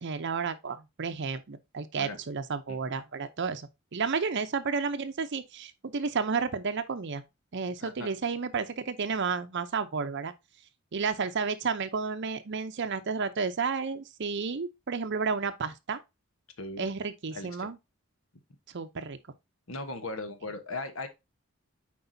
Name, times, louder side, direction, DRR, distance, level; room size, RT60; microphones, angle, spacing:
voice 1, 0.0-7.2 7.5-10.3 10.9-16.0 16.8-17.8 18.7-19.2, right 5 dB, 55° right, 0.6 m, -32 dB
voice 2, 16.6-16.9 17.3-17.7 19.7-21.1, left 2 dB, 70° left, 1.2 m, -38 dB
8.0 x 4.8 x 2.7 m
head